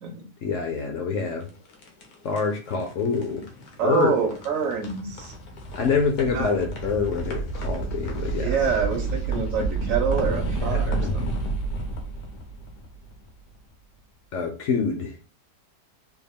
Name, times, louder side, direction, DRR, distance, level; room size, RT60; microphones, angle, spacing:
voice 1, 0.4-1.5 2.2-3.5 3.8-4.2 5.7-8.5 10.6-11.3 14.3-15.2, left 5 dB, 65° left, 2 dB, 0.8 m, -26 dB
sound 1, 1.4-13.5, right 3 dB, 85° left, 1.4 m, -30 dB
voice 2, 3.8-5.3 6.3-6.5 8.4-11.4, right 6 dB, 65° right, 3 dB, 1.0 m, -26 dB
3.5 x 2.3 x 3.4 m, 0.34 s
omnidirectional pair, 1.7 m